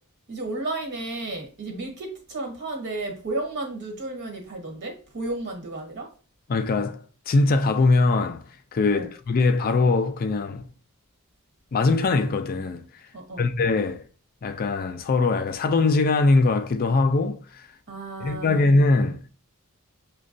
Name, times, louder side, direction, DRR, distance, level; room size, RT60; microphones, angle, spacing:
voice 1, 0.3-6.1 8.9-9.1 13.1-13.5 17.9-18.7, right 2 dB, 55° right, 1.3 m, -33 dB
voice 2, 6.5-8.4 8.7-10.7 11.7-12.9 13.4-14.0 14.4-17.6 18.2-19.2, left 3 dB, 40° left, 0.4 m, -22 dB
6.1 x 2.2 x 2.5 m
head